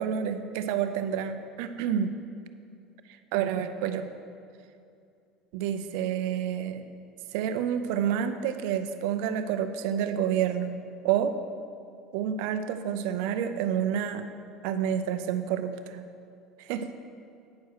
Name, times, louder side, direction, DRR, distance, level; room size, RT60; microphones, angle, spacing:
voice 1, 0.0-2.1 3.3-4.1 5.5-6.8 7.3-11.3 12.1-14.3 14.6-16.0 16.6-17.0, right 9 dB, 75° right, 9 dB, 0.5 m, -29 dB
9.2 x 6.3 x 4.8 m, 2.4 s
supercardioid pair, 100°, 0 cm